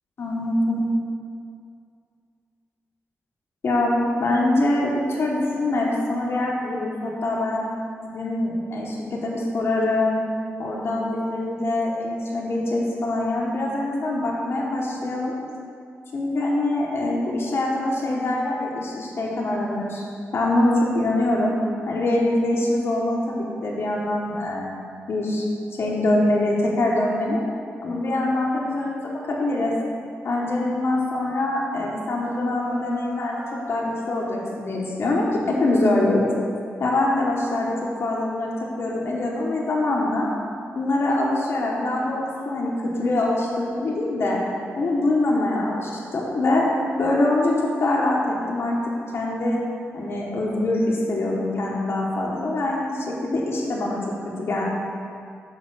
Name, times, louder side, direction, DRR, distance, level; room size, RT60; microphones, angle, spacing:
voice 1, 0.2-0.9 3.6-7.7 8.0-10.2 10.6-15.4 16.1-20.0 20.3-21.5 21.9-24.7 25.1-25.4 25.7-27.4 27.8-29.7 30.2-33.4 33.7-36.3 36.8-40.3 40.7-44.4 44.8-46.7 47.0-48.8 49.1-49.6 49.9-54.0 54.4-54.6, left 2 dB, 60° left, -3 dB, 1.3 m, -24 dB
sound 1, 32.2-34.4, right 1 dB, 55° right, 1.0 m, -41 dB
6.6 x 4.7 x 6.2 m, 2.3 s
cardioid pair, 85°, 5 cm